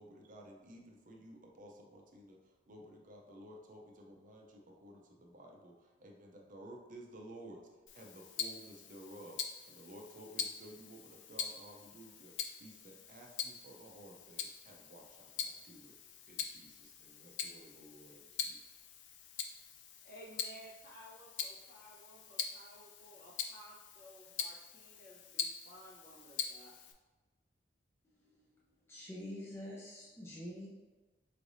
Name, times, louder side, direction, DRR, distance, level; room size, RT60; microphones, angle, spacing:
voice 1, 0.0-7.6 7.9-16.0 16.3-18.6, right 1 dB, 45° right, 0 dB, 0.6 m, -54 dB
Tick-tock, 7.9-26.9, left 7 dB, 80° left, 0.4 m, -44 dB
voice 2, 20.0-26.7, equal, 55° left, -5 dB, 1.3 m, -56 dB
voice 3, 28.9-30.7, left 1 dB, 15° left, -5 dB, 0.5 m, -46 dB
4.7 x 3.2 x 2.6 m, 1.2 s
head